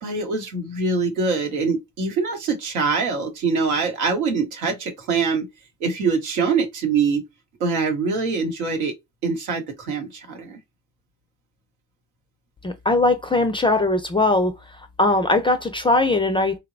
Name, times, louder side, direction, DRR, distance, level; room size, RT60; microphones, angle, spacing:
voice 1, 0.0-5.5 5.8-7.2 7.6-8.9 9.2-10.6, right 4 dB, 90° right, 0.8 m, -24 dB
voice 2, 12.6-14.5 15.0-16.6, left 2 dB, 15° left, 0.3 m, -20 dB
3.0 x 2.0 x 2.4 m
hypercardioid pair, 55°, 43 cm